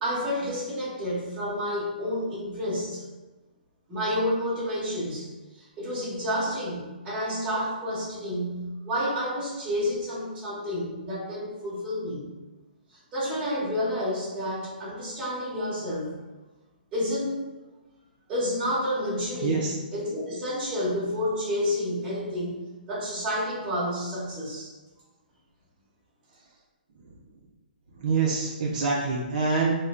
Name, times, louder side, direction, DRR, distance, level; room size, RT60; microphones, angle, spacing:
voice 1, 0.0-3.0 3.9-5.3 5.5-12.3 13.1-16.2 16.9-17.4 18.3-22.6 22.9-24.7, equal, 20° right, -9 dB, 1.2 m, -30 dB
voice 2, 19.4-19.7 28.0-29.7, right 4 dB, 55° right, -4 dB, 0.5 m, -25 dB
3.1 x 2.1 x 3.6 m, 1.2 s
hypercardioid pair, 160°, 5 cm